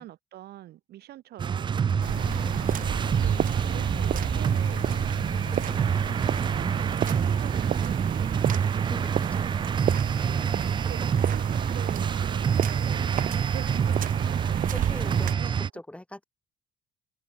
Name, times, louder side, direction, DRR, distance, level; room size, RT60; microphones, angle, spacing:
voice 1, 0.0-1.8 2.7-5.2 5.6-9.5 10.2-10.6 10.9-14.8 15.4-15.5, right 14 dB, 70° right, 7.5 m, -45 dB
sound 1, 1.4-15.7, right 7 dB, 30° right, 0.4 m, -27 dB
sound 2, 1.9-7.0, left 10 dB, 55° left, 6.7 m, -42 dB
sound 3, 2.0-15.3, right 11 dB, 55° right, 1.1 m, -32 dB
voice 2, 8.9-9.5 10.2-10.6 14.7-16.2, left 1 dB, 5° left, 5.9 m, -42 dB
cardioid pair, 110°, 17 cm